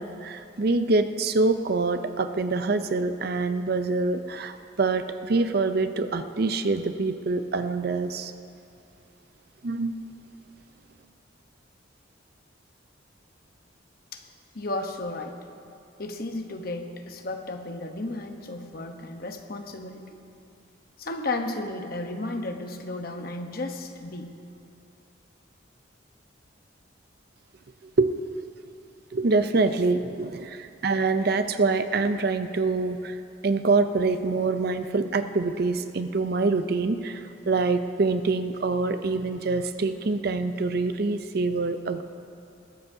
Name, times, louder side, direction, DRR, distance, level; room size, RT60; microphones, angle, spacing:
voice 1, 0.0-8.3 9.6-9.9 28.0-28.1 29.1-33.2 33.4-42.0, right 3 dB, 50° right, 9 dB, 0.5 m, -25 dB
voice 2, 14.5-15.4 16.0-20.2 21.0-24.3, left 2 dB, 50° left, 5 dB, 1.0 m, -33 dB
20.5 x 15.0 x 2.7 m, 2.8 s
head